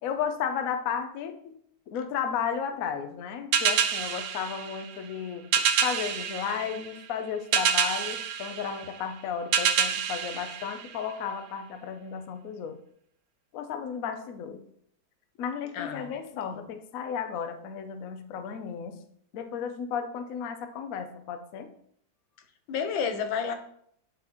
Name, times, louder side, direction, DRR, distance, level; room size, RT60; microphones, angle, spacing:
voice 1, 0.0-1.5 1.9-5.4 5.8-12.8 13.5-14.6 15.4-19.0 19.3-21.7, left 7 dB, 65° left, 0.9 m, -34 dB
sound 1, 3.5-11.4, right 8 dB, 75° right, 1.3 m, -28 dB
voice 2, 15.7-16.1 16.5-16.6 22.7-23.5, left 6 dB, 90° left, 1.5 m, -31 dB
9.7 x 3.8 x 3.0 m
omnidirectional pair, 2.1 m